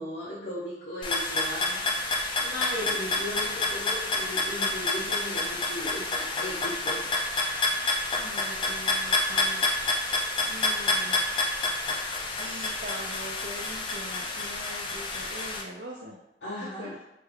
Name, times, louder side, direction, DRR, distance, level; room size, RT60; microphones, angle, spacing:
voice 1, 0.0-7.0 16.4-16.9, left 1 dB, 75° left, -7 dB, 0.7 m, -36 dB
sound 1, 1.0-15.6, left 2 dB, 30° left, 0.3 m, -29 dB
voice 2, 8.2-9.7 10.4-11.2 12.4-16.2 16.6-17.0, right 1 dB, 60° right, -4 dB, 0.4 m, -42 dB
3.3 x 2.3 x 3.2 m, 0.88 s
head